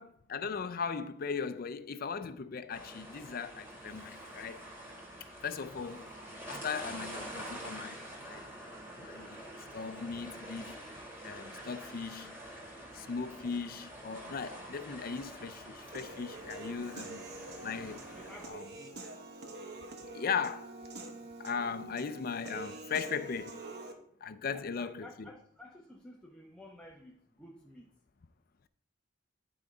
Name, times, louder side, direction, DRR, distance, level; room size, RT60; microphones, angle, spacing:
voice 1, 0.0-4.6 5.4-6.1 6.5-8.4 9.0-9.4 9.7-10.8 11.2-12.4 12.9-17.2 17.6-18.0 18.5-18.7 20.1-20.7 21.4-23.6 24.2-25.3, left 5 dB, 50° left, 0.5 m, -38 dB
sound 1, 2.7-18.5, right 1 dB, 15° right, 2.3 m, -47 dB
Human voice / Piano, 15.9-23.9, right 2 dB, 60° right, 1.1 m, -46 dB
voice 2, 18.1-19.0 24.5-27.9, left 1 dB, 5° left, 0.6 m, -53 dB
10.5 x 3.9 x 4.9 m
head